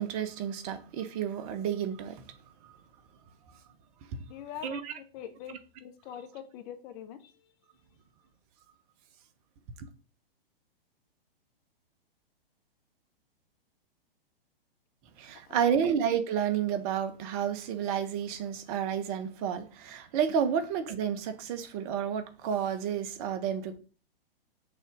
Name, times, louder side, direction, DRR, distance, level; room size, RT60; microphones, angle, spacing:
voice 1, 0.0-2.3 2.6-2.8 4.6-4.9 5.5-5.6 9.8-9.9 15.2-23.8, right 8 dB, 40° right, 1.2 m, -31 dB
voice 2, 4.3-5.5 5.8-7.3 15.5-15.8, left 10 dB, 40° left, 1.3 m, -43 dB
6.6 x 4.3 x 6.3 m
hypercardioid pair, 120°, 30 cm